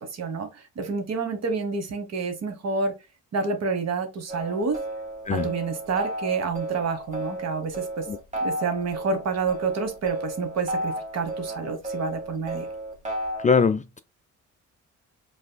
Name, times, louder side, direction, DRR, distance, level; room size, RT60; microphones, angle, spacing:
voice 1, 0.1-2.9 3.3-4.8 5.3-8.1 8.4-12.7, right 4 dB, 60° right, 1.4 m, -28 dB
sound 1, 4.3-13.5, right 1 dB, 25° right, 2.0 m, -33 dB
voice 2, 13.4-14.0, left 5 dB, 25° left, 0.4 m, -22 dB
5.4 x 3.4 x 2.2 m
cardioid pair, 90°, 30 cm